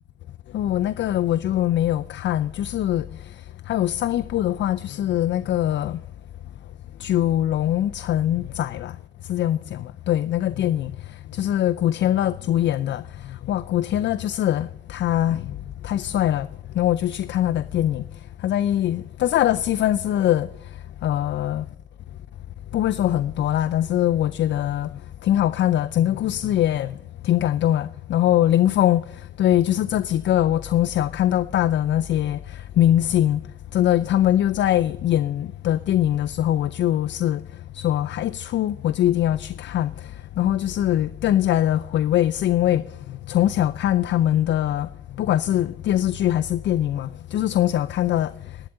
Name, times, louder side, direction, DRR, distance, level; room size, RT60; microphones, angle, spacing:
voice 1, 0.5-6.0 7.0-21.7 22.7-33.4 33.7-48.7, left 12 dB, 65° left, 0.5 m, -23 dB
11.5 x 10.0 x 8.8 m
cardioid pair, 90°, 20 cm